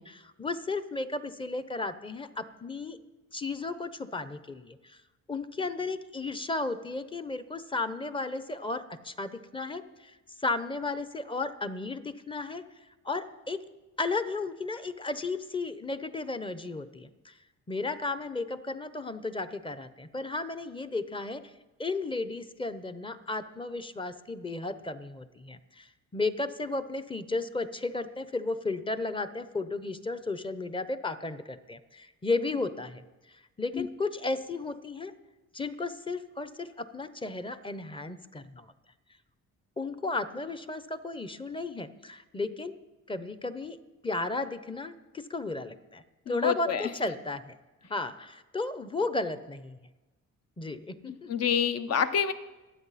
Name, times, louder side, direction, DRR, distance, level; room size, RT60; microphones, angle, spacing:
voice 1, 0.0-3.0 3.3-5.0 5.3-13.6 14.0-17.3 17.7-21.5 21.8-33.0 33.3-35.1 35.5-38.7 39.8-42.7 43.1-43.8 44.0-47.6 47.8-49.8 50.6-51.3, left 3 dB, 15° left, 12 dB, 0.8 m, -34 dB
voice 2, 46.3-46.9 51.1-52.3, left 8 dB, 55° left, 11 dB, 0.9 m, -27 dB
22.0 x 8.0 x 4.2 m, 1.1 s
cardioid pair, 90°, 30 cm